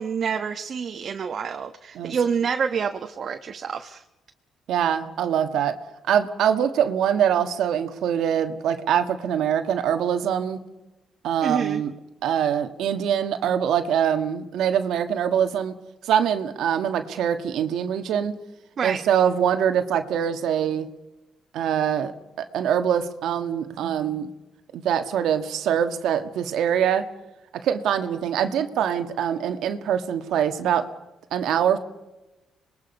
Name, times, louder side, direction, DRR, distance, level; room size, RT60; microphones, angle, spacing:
voice 1, 0.0-4.0 11.4-11.8 18.8-19.0, right 6 dB, 55° right, 6 dB, 1.2 m, -27 dB
voice 2, 4.7-5.8 6.1-10.6 11.2-11.9 12.2-15.7 16.1-18.3 18.8-20.9 21.5-22.1 22.4-24.3 24.7-27.1 27.6-30.9 31.3-31.8, right 9 dB, 80° right, 8 dB, 1.5 m, -23 dB
26.5 x 21.0 x 5.4 m, 1.0 s
cardioid pair, 90°, 0 cm